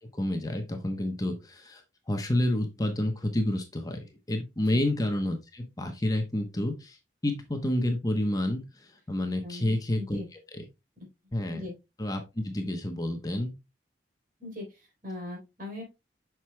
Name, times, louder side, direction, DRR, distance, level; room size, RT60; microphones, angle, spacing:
voice 1, 0.1-1.8 2.1-4.0 4.3-7.0 7.2-10.2 10.5-10.6 11.3-11.6 12.0-13.5, left 1 dB, 20° left, 5 dB, 0.9 m, -29 dB
voice 2, 9.4-10.3 11.5-11.7 14.4-15.8, left 2 dB, 50° right, -1 dB, 3.9 m, -40 dB
7.9 x 6.1 x 2.2 m, 0.24 s
head